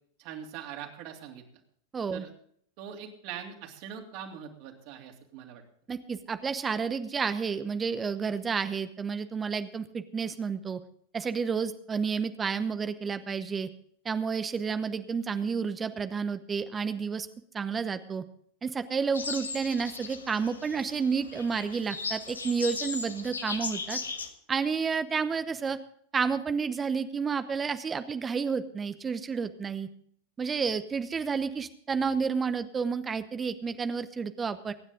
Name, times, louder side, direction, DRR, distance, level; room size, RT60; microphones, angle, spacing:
voice 1, 0.2-1.4 2.1-2.3 2.8-5.6, right 8 dB, 50° right, 2 dB, 3.0 m, -42 dB
voice 2, 1.9-2.2 5.9-10.8 11.1-13.7 14.0-17.3 17.5-18.2 18.6-24.0 24.5-25.8 26.1-29.9 30.4-34.7, right 5 dB, 20° right, 11 dB, 0.9 m, -30 dB
sound 1, 19.1-24.3, left 4 dB, 80° left, 1.5 m, -37 dB
23.5 x 10.0 x 3.8 m, 0.63 s
figure-of-eight pair, 90°, 0 cm